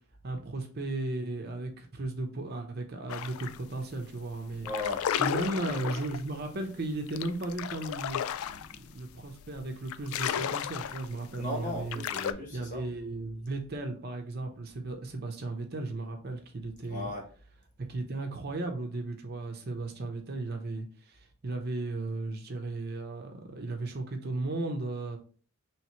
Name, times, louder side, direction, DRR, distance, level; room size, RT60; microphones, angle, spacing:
voice 1, 0.2-4.7 5.2-12.0 12.5-17.1 17.9-25.2, right 2 dB, 45° right, 4 dB, 0.7 m, -35 dB
sound 1, 3.1-3.6 3.9-4.2 4.5-12.3, left 9 dB, 80° left, 0.3 m, -34 dB
voice 2, 4.6-5.0 11.4-12.8 16.9-17.2, left 2 dB, 35° left, 1 dB, 1.1 m, -36 dB
3.2 x 3.0 x 4.3 m, 0.41 s
head